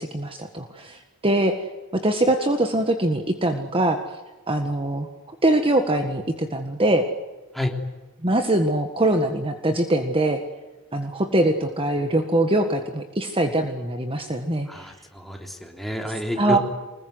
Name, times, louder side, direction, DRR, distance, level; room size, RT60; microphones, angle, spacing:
voice 1, 0.0-1.5 2.0-4.0 4.5-5.1 5.4-7.0 8.2-10.4 10.9-14.9 16.4-16.6, right 1 dB, 25° right, 5 dB, 1.7 m, -22 dB
voice 2, 14.7-16.6, left 1 dB, ahead, 2 dB, 3.5 m, -29 dB
25.5 x 21.5 x 9.6 m, 1.2 s
head